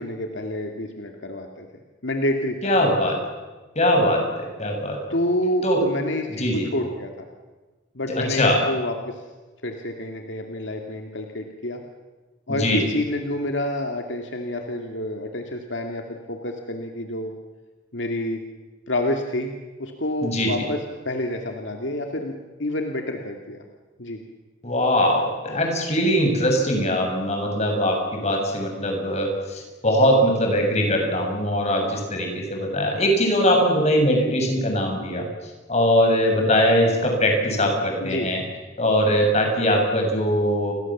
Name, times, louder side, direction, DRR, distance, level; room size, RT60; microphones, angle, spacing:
voice 1, 0.0-1.7 2.0-2.8 5.1-7.1 7.9-9.2 9.6-11.8 12.5-17.3 17.9-18.4 18.9-19.5 19.8-22.3 22.6-23.6 24.0-24.2 38.0-38.3, left 1 dB, 70° left, 3 dB, 2.4 m, -28 dB
voice 2, 2.6-3.2 3.7-5.0 5.6-5.8 6.3-6.7 8.1-8.6 12.5-12.8 20.2-20.5 24.6-35.3 35.7-38.4 38.8-40.7, equal, 35° left, 2 dB, 6.7 m, -21 dB
30.0 x 23.0 x 7.4 m, 1.3 s
head